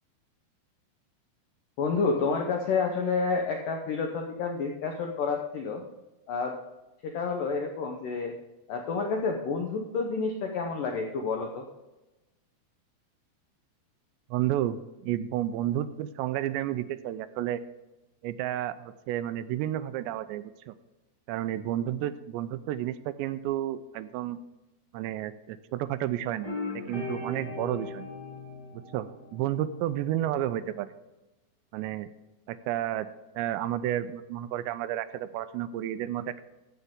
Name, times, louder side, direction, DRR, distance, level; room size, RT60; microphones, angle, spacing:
voice 1, 1.8-5.8 6.3-6.6 7.0-8.3 8.7-11.7, left 4 dB, 80° left, 2 dB, 1.9 m, -29 dB
voice 2, 14.3-17.6 18.2-20.7 21.3-24.4 24.9-26.5 26.9-28.1 28.7-30.9 31.7-32.1 32.5-33.1 33.4-36.4, right 12 dB, 85° right, 13 dB, 2.7 m, -31 dB
sound 1, 26.4-29.9, left 2 dB, 10° left, 2.1 m, -38 dB
14.0 x 8.2 x 3.6 m, 1.0 s
omnidirectional pair, 5.1 m